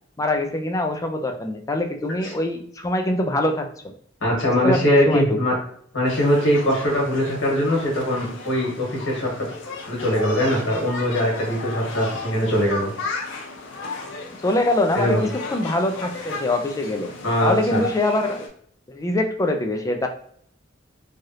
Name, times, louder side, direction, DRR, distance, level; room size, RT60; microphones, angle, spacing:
voice 1, 0.2-3.9 4.6-5.4 14.4-17.1 17.4-18.5 18.9-20.1, left 1 dB, 15° left, 5 dB, 0.3 m, -23 dB
voice 2, 4.2-5.5 5.9-9.5 9.9-12.9 14.9-15.2 17.2-17.8, equal, 85° left, -2 dB, 1.4 m, -21 dB
sound 1, 6.0-18.5, left 3 dB, 65° left, 0.7 m, -35 dB
3.2 x 2.3 x 2.7 m, 0.63 s
head